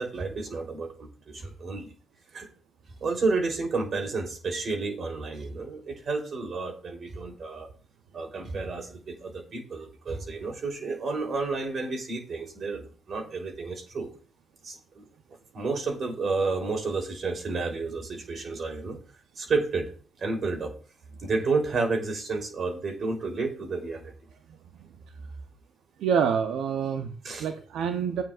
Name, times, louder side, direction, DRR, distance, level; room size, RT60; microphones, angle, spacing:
voice 1, 0.0-1.9 2.3-2.5 3.0-7.7 8.1-14.1 14.6-15.0 15.5-19.0 19.4-19.9 20.2-20.7 21.2-24.1 27.2-27.5, right 3 dB, 55° right, 4 dB, 3.4 m, -31 dB
voice 2, 26.0-27.1 27.4-28.2, right 7 dB, 80° right, 6 dB, 0.8 m, -26 dB
15.0 x 9.2 x 2.5 m, 0.40 s
supercardioid pair, 60°, 0 cm